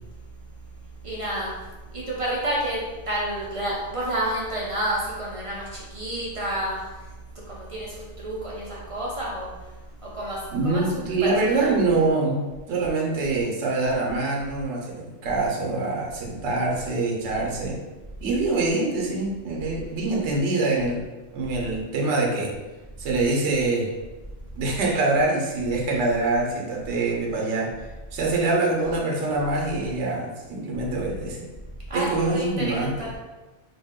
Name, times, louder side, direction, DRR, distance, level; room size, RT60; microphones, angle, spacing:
voice 1, 1.0-1.5 1.9-6.8 7.5-9.5 10.1-11.7 31.9-33.1, right 1 dB, 40° right, -5 dB, 0.6 m, -30 dB
voice 2, 10.5-17.8 18.2-21.0 21.3-22.5 23.0-23.9 24.6-27.7 28.1-31.5 31.9-33.2, right 3 dB, 75° right, -1 dB, 1.0 m, -25 dB
2.6 x 2.2 x 3.5 m, 1.1 s
omnidirectional pair, 1.2 m